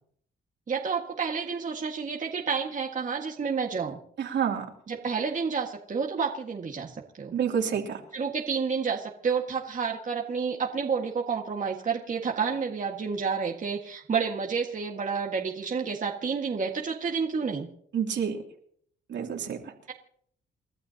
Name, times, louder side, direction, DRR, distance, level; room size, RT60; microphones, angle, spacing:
voice 1, 0.7-4.0 4.9-7.3 8.1-17.7, right 5 dB, 40° right, -1 dB, 1.9 m, -30 dB
voice 2, 4.2-4.7 7.3-8.0 17.9-18.4 19.1-19.7, right 7 dB, 65° right, 1 dB, 3.1 m, -28 dB
29.5 x 12.5 x 2.9 m, 0.64 s
cardioid pair, 90°, 20 cm